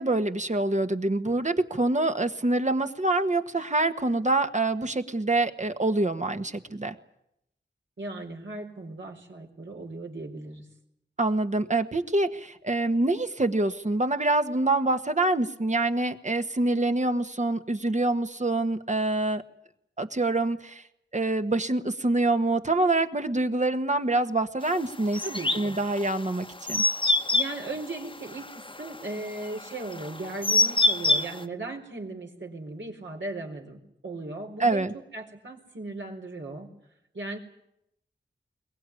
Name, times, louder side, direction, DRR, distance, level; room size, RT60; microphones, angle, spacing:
voice 1, 0.0-6.9 11.2-19.4 20.0-20.8 21.1-25.2 25.5-26.8 34.6-34.9, right 2 dB, 40° right, 8 dB, 1.5 m, -26 dB
voice 2, 8.0-10.7 25.2-25.8 27.3-34.9 35.1-36.7 37.1-37.4, right 2 dB, 70° right, 1 dB, 4.3 m, -37 dB
sound 1, 25.1-31.4, left 2 dB, 25° left, 1.2 m, -26 dB
22.5 x 19.0 x 9.9 m, 0.80 s
wide cardioid pair, 60°, 20 cm